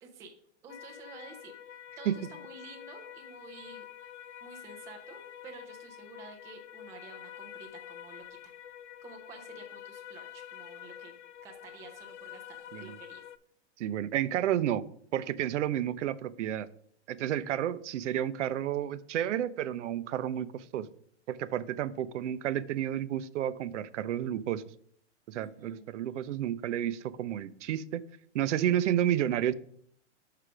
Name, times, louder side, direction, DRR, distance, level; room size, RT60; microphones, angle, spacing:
voice 1, 0.0-4.1 4.4-8.5 9.0-11.1 11.4-13.2 25.4-25.9, right 4 dB, 10° right, 2 dB, 0.4 m, -51 dB
sound 1, 0.7-13.4, left 10 dB, 70° left, 0.6 m, -47 dB
voice 2, 13.8-14.8 15.1-16.7 17.1-20.9 21.3-24.6 25.3-28.0 28.3-29.5, right 11 dB, 75° right, 16 dB, 0.6 m, -31 dB
5.7 x 4.9 x 4.9 m, 0.64 s
hypercardioid pair, 155°, 36 cm